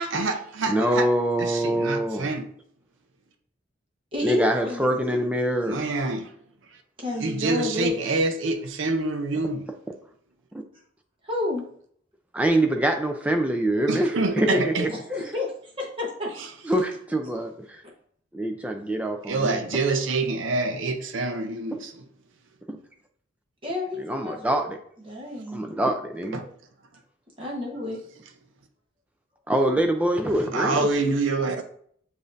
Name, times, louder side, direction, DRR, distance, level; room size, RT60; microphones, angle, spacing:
voice 1, 0.1-1.1 1.4-2.5 5.6-6.3 7.2-9.7 13.9-14.9 16.4-16.5 19.2-21.9 26.3-26.5 30.5-31.6, right 3 dB, 80° right, 7 dB, 0.6 m, -26 dB
voice 2, 0.7-2.3 4.2-5.8 12.3-14.9 16.6-17.8 18.3-19.6 21.7-21.8 22.7-22.8 24.0-24.8 25.5-26.4 29.5-30.9, right 1 dB, 5° right, 4 dB, 0.4 m, -24 dB
voice 3, 4.1-5.2 7.0-8.0 11.2-11.6 14.8-15.5 15.8-16.3 23.6-24.7 25.0-25.6 27.4-28.0, left 2 dB, 25° right, -2 dB, 1.0 m, -30 dB
6.9 x 2.6 x 2.5 m, 0.62 s
head